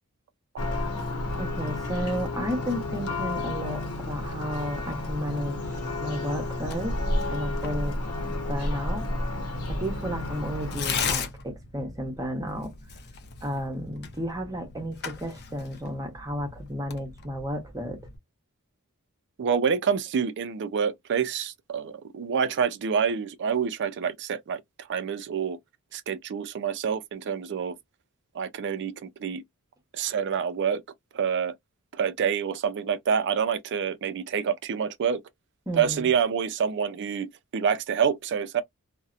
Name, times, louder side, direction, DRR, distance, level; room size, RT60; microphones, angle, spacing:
Church bell, 0.6-11.1, left 1 dB, 85° left, 0.7 m, -31 dB
voice 1, 1.4-7.0 7.3-8.0 8.3-9.1 9.4-12.7 13.4-18.0 35.7-36.1, equal, 15° right, 0.8 m, -33 dB
Tearing, 6.6-18.2, left 6 dB, 50° left, 0.6 m, -38 dB
voice 2, 19.4-24.6 24.9-25.6 25.9-27.8 28.3-29.4 29.9-30.8 31.1-31.5 31.9-35.2 35.7-38.6, right 7 dB, 55° right, 0.4 m, -27 dB
2.7 x 2.1 x 2.4 m
head